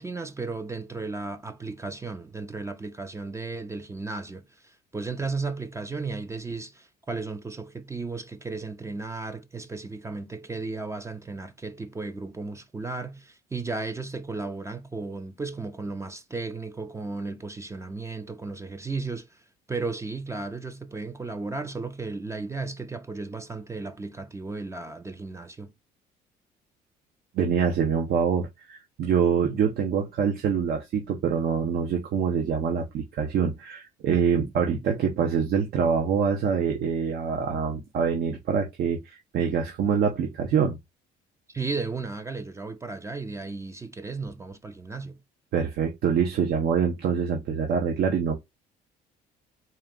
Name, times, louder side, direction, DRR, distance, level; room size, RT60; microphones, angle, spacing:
voice 1, 0.0-25.7 41.5-45.2, right 3 dB, 15° right, 0.5 m, -35 dB
voice 2, 27.3-40.8 45.5-48.3, right 7 dB, 65° right, 0.9 m, -25 dB
4.1 x 2.4 x 3.7 m
cardioid pair, 110°, 17 cm